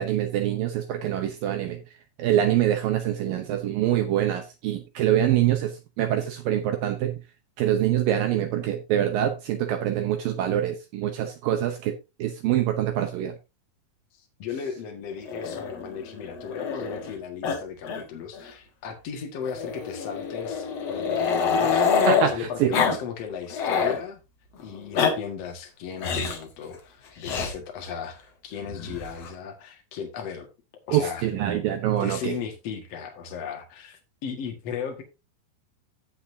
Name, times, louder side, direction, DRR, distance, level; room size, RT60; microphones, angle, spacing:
voice 1, 0.0-1.8 2.2-7.2 7.6-11.9 12.2-13.4 22.1-22.7 30.9-32.3, right 11 dB, 85° right, 2.0 m, -25 dB
voice 2, 14.1-24.2 24.6-28.2 28.4-30.5 30.9-31.3 32.0-35.0, left 7 dB, 50° left, 2.0 m, -36 dB
Growling, 15.3-17.1 17.4-17.6 17.8-18.0 18.3-18.4 19.5-22.3 22.7-23.0 23.3-24.0 24.7-25.1 26.0-26.4 27.2-27.5 28.6-29.3, left 6 dB, 70° left, 1.5 m, -26 dB
16.0 x 5.9 x 2.7 m
omnidirectional pair, 5.3 m